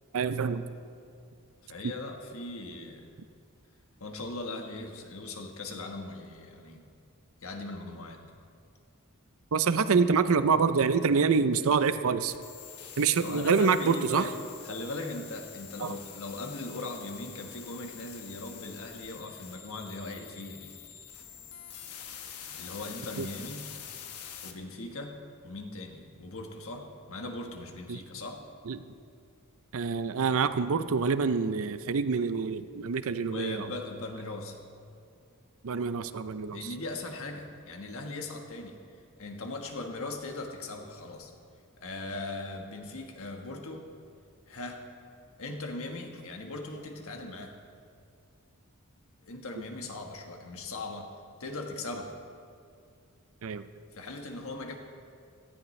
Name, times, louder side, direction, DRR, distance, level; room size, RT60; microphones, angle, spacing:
voice 1, 0.1-0.6 9.5-12.3 13.0-14.3 15.8-16.0 23.2-23.3 27.9-28.0 28.7-28.8 29.7-33.7 35.6-36.7 53.4-53.7, right 5 dB, 65° right, 12 dB, 0.6 m, -26 dB
voice 2, 1.6-3.1 4.0-6.9 7.4-8.2 13.2-14.3 14.6-20.7 22.5-23.6 24.4-28.4 33.3-34.6 36.5-38.8 39.2-41.3 41.8-43.9 44.5-44.9 45.4-47.6 49.2-51.1 51.4-52.2 53.9-54.8, left 2 dB, 65° left, 3 dB, 1.4 m, -39 dB
sound 1, 12.3-24.5, left 8 dB, 90° left, 1.1 m, -46 dB
17.5 x 13.5 x 3.2 m, 2.4 s
head